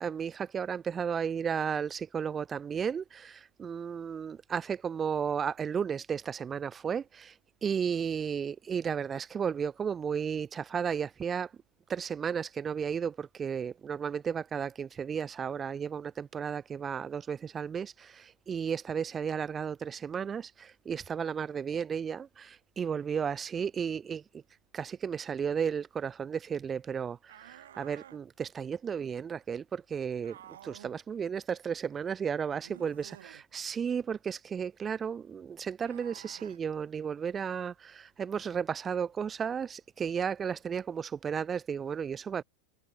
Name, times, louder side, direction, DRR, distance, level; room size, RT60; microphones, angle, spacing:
voice 1, 0.0-7.4 7.6-11.5 11.9-24.4 24.7-42.4, right 7 dB, 20° right, 0.5 m, -34 dB
sound 1, 27.3-28.2 30.2-31.0 32.6-33.4 35.8-36.6, right 11 dB, 60° right, 0.9 m, -52 dB
figure-of-eight pair, 90°, 0 cm